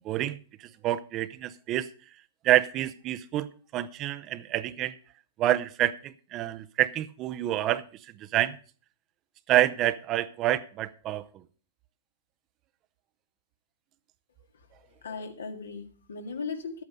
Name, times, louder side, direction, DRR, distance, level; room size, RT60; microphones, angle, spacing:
voice 1, 0.0-1.9 2.4-4.9 5.4-7.8 8.2-8.6 9.5-11.3, right 13 dB, 35° right, 0.6 m, -27 dB
voice 2, 15.0-16.8, left 5 dB, 80° left, 1.9 m, -37 dB
12.0 x 8.5 x 5.3 m
hypercardioid pair, 120°, 0 cm